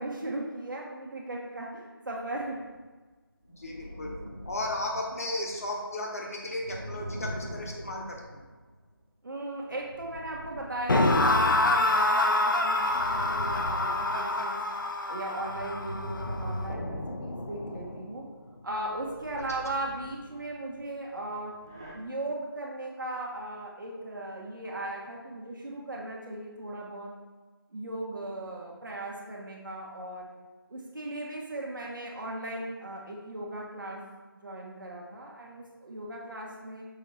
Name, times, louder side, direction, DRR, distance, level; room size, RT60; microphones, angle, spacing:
voice 1, 0.0-2.6 9.2-14.6 15.1-18.3 18.6-21.5 21.9-27.1 27.7-30.3 30.7-34.0 34.4-36.9, right 1 dB, 55° right, -2 dB, 1.4 m, -37 dB
sound 1, 2.4-2.7 3.4-5.8 6.3-8.7 9.7-11.9 12.4-14.8 15.2-17.9 18.6-20.9 21.5-21.9, equal, 10° right, 0.4 m, -42 dB
voice 2, 3.5-4.1 4.4-8.4, left 1 dB, 40° left, 0 dB, 1.1 m, -35 dB
sound 2, 10.9-18.0, left 2 dB, 55° left, 0.7 m, -27 dB
6.5 x 4.6 x 4.1 m, 1.3 s
figure-of-eight pair, 165°, 13 cm